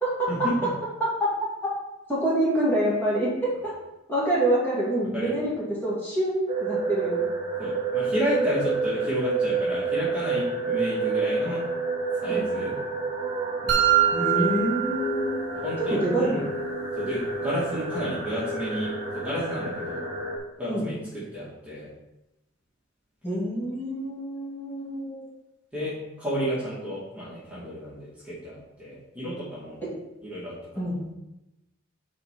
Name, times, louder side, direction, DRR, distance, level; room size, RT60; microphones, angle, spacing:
voice 1, 2.1-3.7 4.1-5.5 5.8-7.2 12.3-12.5 14.1-15.4 15.8-16.5 20.7-20.9 23.2-25.3 30.7-31.0, right 1 dB, 10° left, -8 dB, 2.5 m, -26 dB
sound 1, 6.5-20.4, right 3 dB, 30° right, 1.2 m, -29 dB
voice 2, 7.6-11.6 12.1-12.8 14.3-14.5 15.5-16.4 16.9-20.1 20.6-21.9 25.7-29.8 30.2-31.0, equal, 5° right, -11 dB, 2.2 m, -31 dB
sound 2, 13.7-15.7, right 11 dB, 60° right, 1.2 m, -24 dB
9.8 x 4.3 x 3.8 m, 0.95 s
head